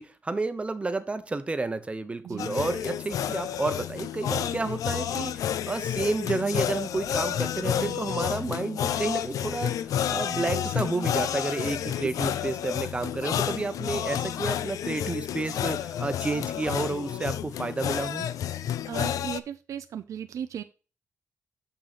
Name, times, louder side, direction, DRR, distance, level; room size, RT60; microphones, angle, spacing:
voice 1, 0.0-9.9 10.1-18.3, right 3 dB, 20° right, 0.9 m, -31 dB
sound 1, 2.4-19.4, left 10 dB, 85° left, 0.4 m, -30 dB
voice 2, 18.9-20.6, right 9 dB, 70° right, 0.5 m, -36 dB
6.5 x 6.3 x 4.1 m
cardioid pair, 110°, 6 cm